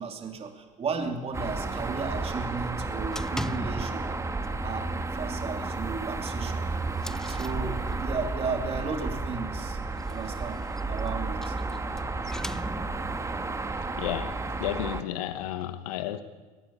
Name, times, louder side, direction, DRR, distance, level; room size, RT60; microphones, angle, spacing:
voice 1, 0.0-4.1 4.6-6.7 7.0-9.8 10.1-11.9, right 4 dB, 30° right, 4 dB, 3.0 m, -35 dB
sound 1, 1.3-15.0, right 3 dB, 15° right, 1.6 m, -32 dB
sound 2, 3.1-4.1 4.4-4.8 5.1-5.2 5.6-5.7 6.3-8.3 9.8-13.2, left 1 dB, 5° left, 0.7 m, -40 dB
voice 2, 13.9-16.2, left 12 dB, 80° left, 10 dB, 1.2 m, -33 dB
21.5 x 14.0 x 8.7 m, 1.3 s
supercardioid pair, 90°, 19 cm